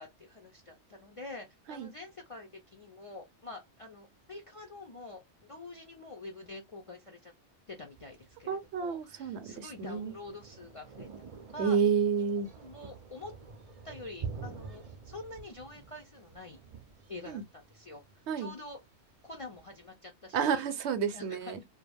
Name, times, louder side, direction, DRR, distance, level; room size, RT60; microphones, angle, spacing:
voice 1, 0.0-7.3 7.7-11.8 12.6-13.3 13.8-16.6 17.1-18.0 18.4-18.8 19.2-20.6 21.1-21.7, left 2 dB, 45° left, 0.4 m, -46 dB
Thunder, 7.9-19.9, right 5 dB, 45° right, 0.5 m, -48 dB
voice 2, 8.5-10.1 11.6-12.5 17.3-17.4 18.3-18.5 20.3-21.7, right 6 dB, 75° right, 0.8 m, -30 dB
2.3 x 2.2 x 3.3 m
omnidirectional pair, 1.2 m